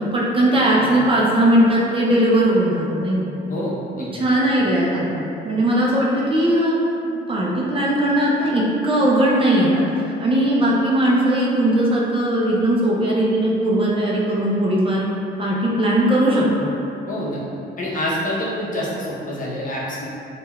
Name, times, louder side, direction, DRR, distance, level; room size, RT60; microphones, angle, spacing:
voice 1, 0.1-3.3 4.1-6.8 7.3-9.8 10.2-15.0 15.4-16.7, right 1 dB, 25° right, -5 dB, 0.4 m, -19 dB
voice 2, 3.5-4.3 17.1-17.4 17.8-20.1, left 1 dB, 40° left, -6 dB, 0.7 m, -26 dB
3.2 x 2.2 x 2.2 m, 2.7 s
cardioid pair, 90°, 20 cm